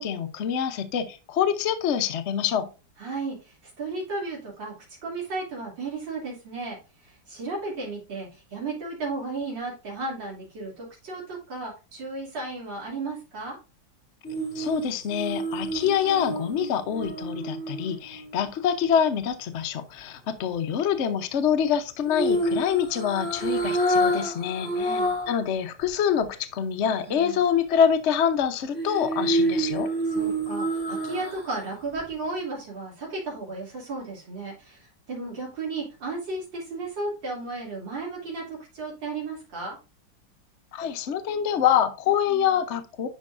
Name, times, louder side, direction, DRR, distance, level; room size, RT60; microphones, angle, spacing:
voice 1, 0.0-2.7 14.5-25.0 25.3-29.9 40.7-43.1, left 8 dB, 55° left, 0.8 m, -25 dB
voice 2, 3.0-4.7 5.0-6.8 7.0-13.6 24.7-25.1 27.1-27.4 30.1-39.8, right 3 dB, 75° right, 3.6 m, -34 dB
sound 1, 14.2-18.5 22.1-25.4 25.8-25.9 28.7-31.6 32.0-32.1, right 1 dB, 5° left, 2.7 m, -28 dB
10.5 x 4.5 x 2.5 m
omnidirectional pair, 2.0 m